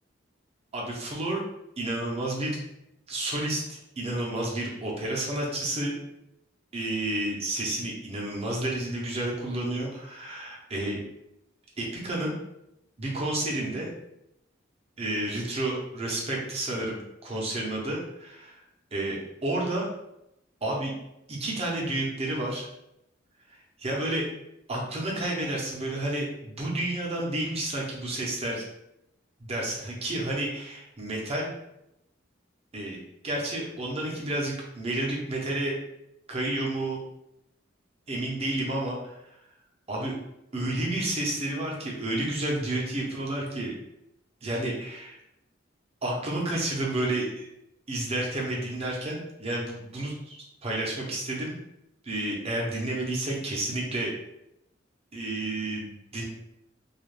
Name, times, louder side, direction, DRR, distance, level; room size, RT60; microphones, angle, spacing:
voice 1, 0.7-1.4 1.8-2.6 3.1-6.0 6.7-11.0 11.8-12.3 13.0-13.9 15.0-18.6 18.9-19.9 20.6-20.9 21.3-22.7 23.8-24.2 24.7-28.6 29.4-31.5 32.7-33.0 33.2-35.8 36.3-37.0 38.1-39.2 39.9-40.1 40.5-43.7 44.4-45.2 46.0-47.5 47.9-50.4 50.6-51.5 52.0-54.1 55.1-56.2, right 1 dB, 30° right, -2 dB, 0.6 m, -30 dB
2.3 x 2.1 x 3.1 m, 0.84 s
head